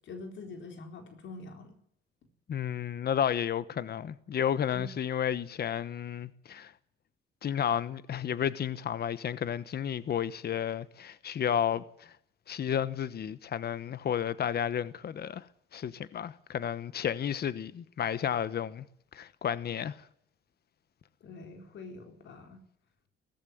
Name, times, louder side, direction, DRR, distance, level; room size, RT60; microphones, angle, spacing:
voice 1, 0.0-1.8 21.2-22.6, left 3 dB, 70° left, 4.0 m, -45 dB
voice 2, 2.5-6.7 7.4-12.1 12.5-15.5 15.7-18.8 19.1-20.0, left 9 dB, 55° left, 1.1 m, -32 dB
18.5 x 15.5 x 9.5 m
cardioid pair, 90°, 20 cm